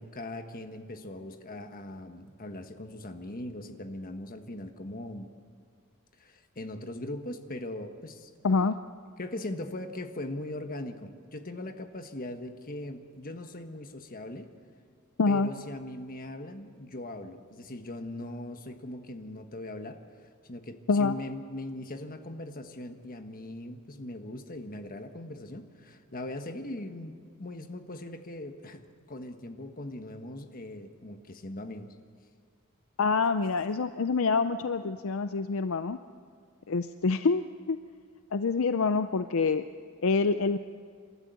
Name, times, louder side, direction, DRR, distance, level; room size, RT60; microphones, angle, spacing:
voice 1, 0.0-5.3 6.2-8.3 9.2-14.5 15.3-20.0 20.4-28.8 29.1-31.9, left 1 dB, 40° left, 7 dB, 1.4 m, -40 dB
voice 2, 8.4-8.8 15.2-15.5 20.9-21.2 33.0-36.0 36.7-37.4 37.7-37.8 38.3-39.6 40.0-40.6, left 4 dB, 65° left, 10 dB, 0.5 m, -26 dB
28.0 x 13.0 x 8.2 m, 2.1 s
head